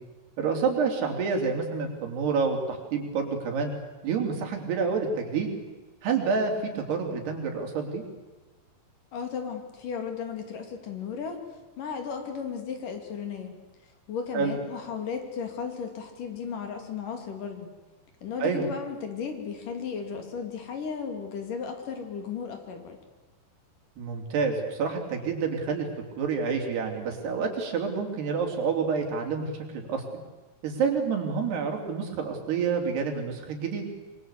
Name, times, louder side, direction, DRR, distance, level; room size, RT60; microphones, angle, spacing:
voice 1, 0.4-3.7 4.0-5.5 6.0-8.0 14.3-14.6 18.4-18.7 24.0-25.9 26.2-30.0 30.6-33.9, right 5 dB, 90° right, 3 dB, 5.4 m, -28 dB
voice 2, 9.1-11.4 11.8-13.6 14.1-17.7 18.2-23.0, left 6 dB, 60° left, 5 dB, 4.1 m, -35 dB
25.5 x 22.5 x 8.3 m, 1.2 s
omnidirectional pair, 4.5 m